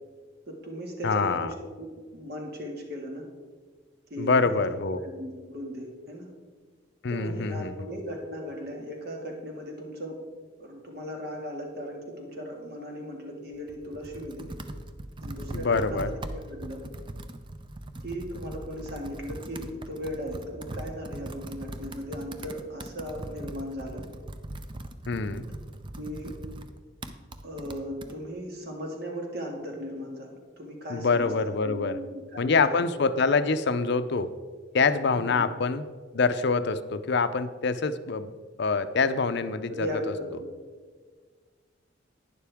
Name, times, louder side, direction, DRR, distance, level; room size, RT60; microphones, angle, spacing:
voice 1, 0.5-3.2 4.1-4.7 5.0-6.3 7.1-10.2 10.6-14.5 15.2-16.8 18.0-24.1 26.0-26.4 27.4-30.3 30.6-31.3 31.6-32.9 35.1-35.5 39.3-40.5, equal, 55° right, 1 dB, 2.0 m, -37 dB
voice 2, 1.0-1.5 4.2-5.0 7.0-7.7 15.5-16.1 25.1-25.4 30.9-32.0 32.4-34.3 34.7-35.8 36.1-38.3 38.6-39.9, left 4 dB, 60° left, 12 dB, 0.6 m, -25 dB
Computer keyboard, 13.5-28.1, right 1 dB, 25° right, 0.5 m, -40 dB
11.5 x 10.0 x 3.5 m, 1.6 s
head